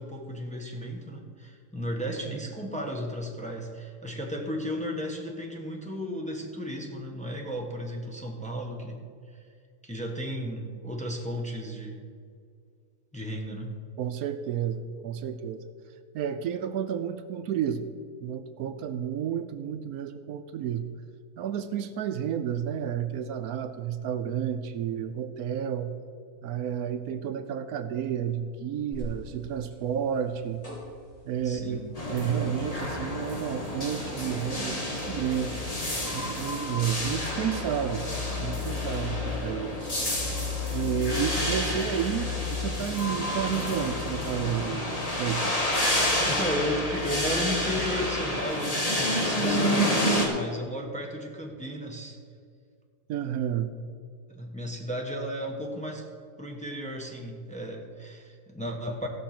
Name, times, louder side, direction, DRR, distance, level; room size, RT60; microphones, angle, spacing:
voice 1, 0.0-9.0 9.8-12.0 13.1-13.7 31.4-31.8 46.2-52.2 54.3-56.1 56.4-59.1, equal, 5° left, 0 dB, 1.1 m, -34 dB
voice 2, 14.0-15.6 16.1-17.9 18.2-20.9 21.4-25.9 26.4-30.7 31.3-31.8 32.1-35.6 36.1-38.1 38.4-39.8 40.7-45.6 53.1-53.8, right 9 dB, 75° right, 10 dB, 1.1 m, -31 dB
sound 1, 28.9-48.1, left 6 dB, 45° left, 3.7 m, -39 dB
sound 2, 32.0-50.3, left 1 dB, 25° left, 1.6 m, -29 dB
15.5 x 6.3 x 5.9 m, 2.2 s
omnidirectional pair, 1.6 m